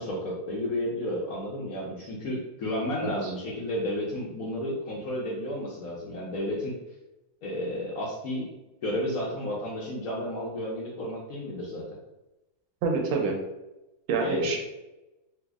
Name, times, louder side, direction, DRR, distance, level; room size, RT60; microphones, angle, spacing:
voice 1, 0.0-6.8 7.4-8.5 8.8-11.8 14.2-14.6, left 1 dB, 70° left, -5 dB, 0.9 m, -32 dB
voice 2, 12.8-13.4 14.1-14.6, right 4 dB, 90° right, 1 dB, 1.5 m, -27 dB
3.3 x 2.0 x 3.4 m, 0.99 s
omnidirectional pair, 2.1 m